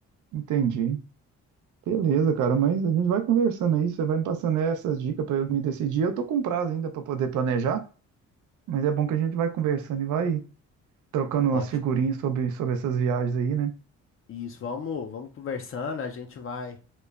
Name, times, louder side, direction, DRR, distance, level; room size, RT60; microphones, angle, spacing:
voice 1, 0.3-1.0 1.9-7.8 8.7-10.4 11.1-13.7, right 7 dB, 75° right, 0.5 m, -25 dB
voice 2, 14.3-16.8, left 5 dB, 45° left, 0.5 m, -34 dB
2.9 x 2.1 x 2.3 m
cardioid pair, 90°, 30 cm